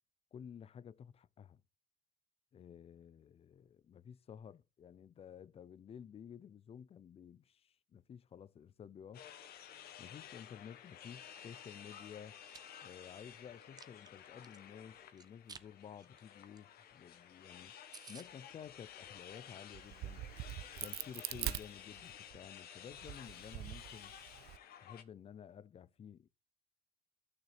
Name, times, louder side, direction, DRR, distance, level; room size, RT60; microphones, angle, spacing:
voice 1, 0.3-1.6 2.5-9.2 10.0-12.4 12.8-17.7 18.1-20.3 20.8-24.1 24.8-26.3, left 8 dB, 35° left, 0.5 m, -53 dB
sound 1, 9.1-25.0, left 9 dB, 65° left, 1.2 m, -54 dB
Chewing mastication, 12.2-12.6 13.1-14.6 15.2-15.7 16.0-16.2 16.6-16.7 16.9-17.0 17.4-17.5 17.6-17.7 17.9-18.3, right 5 dB, 25° right, 0.7 m, -54 dB
Crack, 19.7-22.4 22.9-24.6, right 14 dB, 70° right, 0.5 m, -43 dB
13.0 x 6.4 x 3.3 m
cardioid pair, 110°, 17 cm